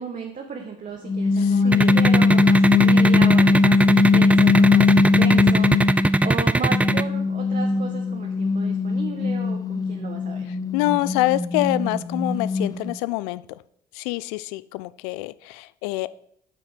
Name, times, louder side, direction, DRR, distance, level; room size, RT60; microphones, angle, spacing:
voice 1, 0.0-10.5, right 5 dB, 40° right, 1 dB, 1.4 m, -34 dB
sound 1, 1.1-6.3 6.7-12.9, left 3 dB, 15° left, 0.8 m, -20 dB
voice 2, 1.4-2.0 10.5-13.4 13.9-16.1, left 19 dB, 70° left, 18 dB, 0.4 m, -26 dB
sound 2, 1.7-7.0, right 2 dB, 5° right, 0.3 m, -20 dB
8.7 x 5.8 x 5.2 m, 0.68 s
figure-of-eight pair, 50°, 21 cm